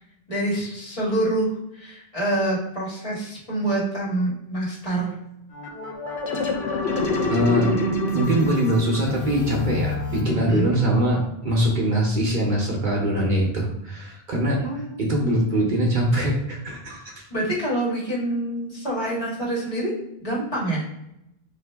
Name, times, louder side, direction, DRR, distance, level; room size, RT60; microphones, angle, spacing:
voice 1, 0.3-5.1 10.4-10.7 14.6-15.1 17.3-19.9 20.2-20.8, right 1 dB, 35° left, -8 dB, 1.6 m, -26 dB
sound 1, 5.5-10.9, left 2 dB, 90° left, 1.0 m, -27 dB
voice 2, 7.3-7.7 8.1-14.6 15.0-17.2, right 1 dB, 55° right, -2 dB, 0.9 m, -22 dB
4.3 x 2.7 x 3.3 m, 0.85 s
omnidirectional pair, 1.0 m